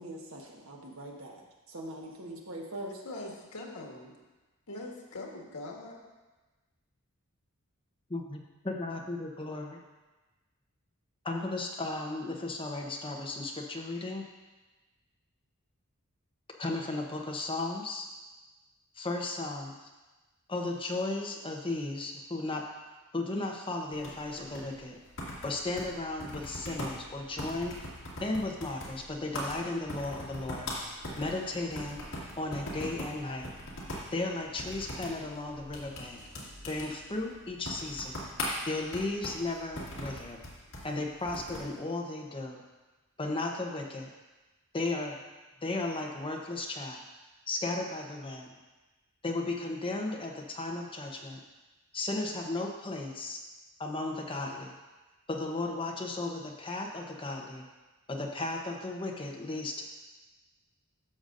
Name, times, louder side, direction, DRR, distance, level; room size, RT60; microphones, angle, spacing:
voice 1, 0.0-1.4 1.7-3.0, right 1 dB, 70° right, 0 dB, 1.3 m, -42 dB
voice 2, 3.0-4.1 4.7-6.0, left 2 dB, 85° left, -1 dB, 1.5 m, -42 dB
voice 3, 8.1-9.8 11.2-14.3 16.6-18.1 18.9-19.7 20.5-22.7 23.1-25.0 25.4-27.8 28.2-30.7 31.2-32.1 32.4-33.5 34.1-36.2 36.7-38.2 38.6-40.4 40.8-42.6 43.2-44.1 44.7-45.2 45.6-47.0 47.5-48.5 49.2-51.4 51.9-53.4 53.8-54.7 55.3-57.6 58.1-59.8, left 2 dB, 25° left, 0 dB, 0.9 m, -35 dB
sound 1, 23.9-41.7, left 1 dB, 65° left, 2.1 m, -41 dB
12.5 x 6.9 x 2.6 m, 1.2 s
head